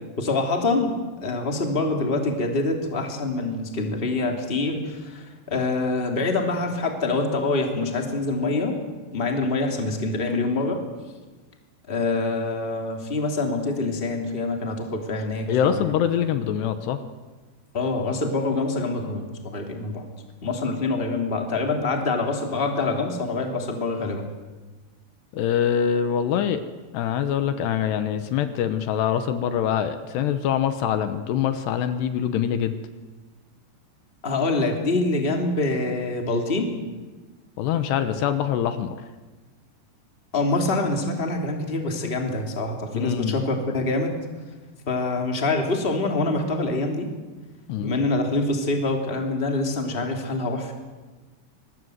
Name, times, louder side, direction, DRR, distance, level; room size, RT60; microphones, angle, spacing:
voice 1, 0.2-8.8 9.1-10.8 11.9-15.9 17.7-20.0 20.4-24.3 34.2-36.7 40.3-44.1 44.9-47.1 47.8-50.7, left 2 dB, 15° left, 3 dB, 2.4 m, -25 dB
voice 2, 15.5-17.0 25.3-26.6 26.9-32.8 37.6-39.0 42.9-43.4 47.7-48.0, left 9 dB, 75° left, 10 dB, 3.1 m, -24 dB
25.0 x 20.0 x 8.0 m, 1.3 s
omnidirectional pair, 5.0 m